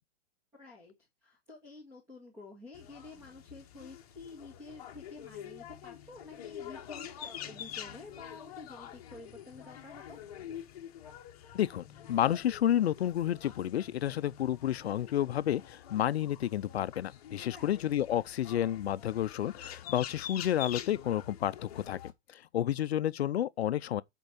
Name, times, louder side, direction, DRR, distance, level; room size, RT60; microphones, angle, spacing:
voice 1, 0.5-0.9 1.2-10.2 17.5-17.8 22.3-22.4, left 3 dB, 10° right, 1.8 m, -50 dB
sound 1, 2.7-22.1, left 10 dB, 35° left, 1.2 m, -46 dB
voice 2, 11.5-22.0 22.3-24.0, left 11 dB, 70° left, 0.6 m, -30 dB
8.1 x 4.6 x 5.1 m
hypercardioid pair, 175°, 32 cm